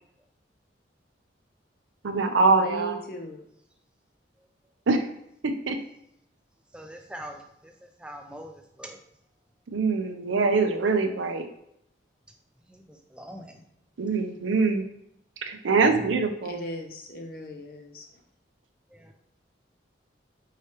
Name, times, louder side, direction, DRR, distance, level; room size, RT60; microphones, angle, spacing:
voice 1, 2.0-3.0 4.9-5.1 5.4-5.8 9.7-11.5 14.0-14.8 15.4-16.6, right 4 dB, 80° right, 6 dB, 0.5 m, -24 dB
voice 2, 2.6-3.4 16.4-18.1, equal, 50° left, 3 dB, 0.6 m, -37 dB
voice 3, 6.7-9.0 10.5-10.6 12.7-13.6 15.8-16.0 18.9-19.1, equal, 5° right, 3 dB, 0.4 m, -43 dB
4.7 x 3.2 x 2.9 m, 0.77 s
head